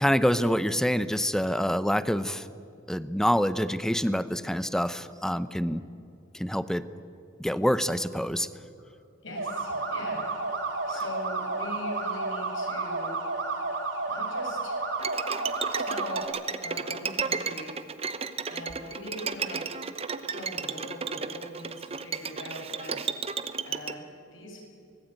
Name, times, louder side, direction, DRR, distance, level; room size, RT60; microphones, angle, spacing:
voice 1, 0.0-2.5 2.9-5.8 6.3-6.9 7.4-8.5, equal, 5° left, 14 dB, 0.7 m, -26 dB
voice 2, 9.2-10.3 10.9-13.1 14.1-14.8 15.8-16.3 16.6-17.8 18.5-19.7 20.3-24.6, left 1 dB, 75° left, 0 dB, 7.2 m, -41 dB
sound 1, 9.4-16.2, right 3 dB, 70° right, 3.7 m, -31 dB
Bowed string instrument, 15.0-23.9, right 5 dB, 30° right, 0.8 m, -33 dB
24.0 x 19.5 x 9.1 m, 2.5 s
head